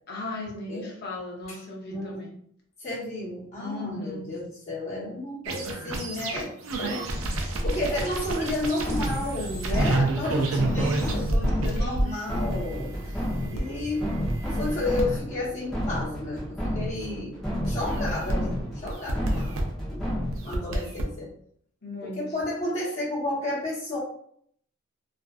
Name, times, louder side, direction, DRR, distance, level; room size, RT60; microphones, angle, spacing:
voice 1, 0.1-2.4 3.6-4.3 11.8-12.2 13.4-13.6 19.2-19.5 21.8-22.4, left 2 dB, 45° left, -2 dB, 0.7 m, -37 dB
voice 2, 1.9-2.2 2.8-6.5 6.8-13.2 13.5-14.1 14.5-17.4 17.7-19.6 19.9-20.1 20.4-21.3 22.0-24.0, left 1 dB, 30° left, -9 dB, 1.1 m, -32 dB
sound 1, 5.4-13.6 14.3-15.0 17.6-18.3 18.9-19.6 20.3-21.0, right 2 dB, 70° right, 0.5 m, -29 dB
sound 2, 7.1-20.6, equal, ahead, 0.6 m, -31 dB
2.5 x 2.4 x 2.3 m, 0.65 s
head